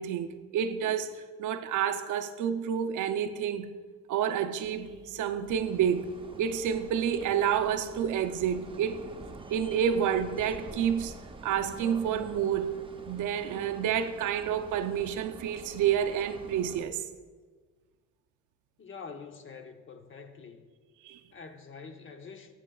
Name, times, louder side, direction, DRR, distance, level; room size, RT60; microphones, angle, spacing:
voice 1, 0.0-3.7 4.1-6.1 6.4-9.0 9.5-11.1 11.4-12.7 13.1-17.0 21.0-21.2, right 8 dB, 80° right, 0.6 m, -29 dB
sound 1, 4.6-16.9, right 1 dB, 80° left, 1.3 m, -52 dB
sound 2, 5.5-16.8, right 3 dB, 15° right, 0.6 m, -48 dB
voice 2, 18.8-20.7 21.3-22.5, left 5 dB, 40° left, 0.8 m, -46 dB
12.0 x 7.5 x 2.3 m
cardioid pair, 90°, 30 cm